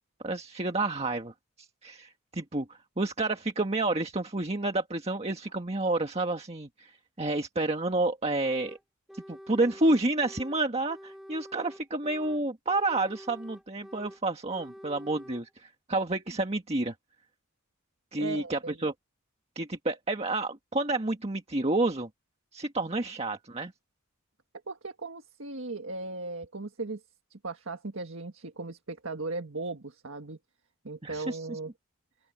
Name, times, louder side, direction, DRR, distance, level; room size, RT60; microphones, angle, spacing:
voice 1, 0.2-8.8 9.1-16.9 18.1-18.9 19.5-22.1 22.5-23.7 31.0-31.6, right 2 dB, 30° right, 1.6 m, -30 dB
sound 1, 8.4-8.8 9.1-10.6 10.9-12.4 12.7-14.2 14.5-15.4, equal, ahead, 1.6 m, -48 dB
voice 2, 18.2-18.8 24.7-27.0 27.3-30.4 30.8-31.7, right 3 dB, 65° right, 1.8 m, -37 dB
open air
head